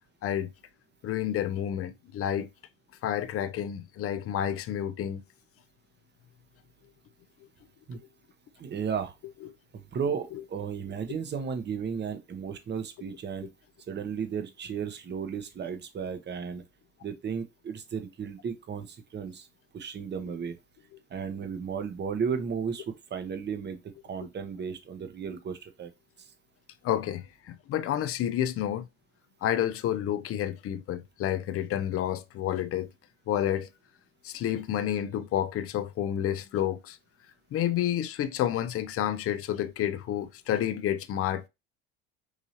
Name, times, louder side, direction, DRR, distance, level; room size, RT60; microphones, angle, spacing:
voice 1, 1.0-2.5 3.0-5.2 10.3-10.4 26.8-28.9 29.4-32.9 33.3-33.7 34.2-37.0 37.5-41.5, left 11 dB, 45° left, 0.5 m, -30 dB
voice 2, 8.6-9.1 9.7-13.5 13.9-16.6 17.0-19.5 19.7-20.6 21.1-25.9, right 6 dB, 35° right, 0.9 m, -34 dB
4.8 x 2.7 x 2.8 m
supercardioid pair, 75°, 31 cm